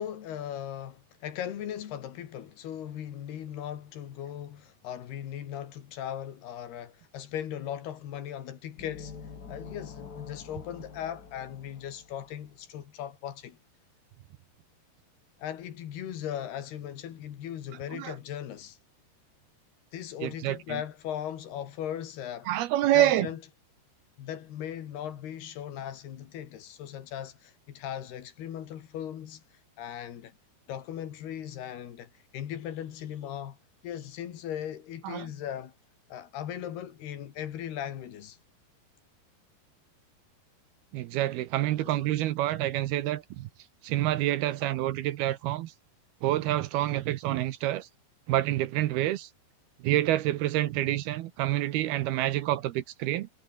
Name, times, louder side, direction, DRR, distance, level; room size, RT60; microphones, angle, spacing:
voice 1, 0.0-9.2 9.5-13.6 15.4-18.8 19.9-22.5 22.9-23.4 24.2-29.4 29.8-30.4 30.7-33.6 33.8-35.8 36.1-38.4 41.8-42.1, left 10 dB, 70° left, 4.0 m, -38 dB
sound 1, 8.8-12.5, left 5 dB, 40° left, 1.4 m, -46 dB
voice 2, 20.2-20.8 22.5-23.3 35.0-35.3 40.9-43.5 43.8-45.7 46.2-47.9 48.3-49.3 49.8-53.3, right 14 dB, 75° right, 2.7 m, -27 dB
omnidirectional pair, 4.9 m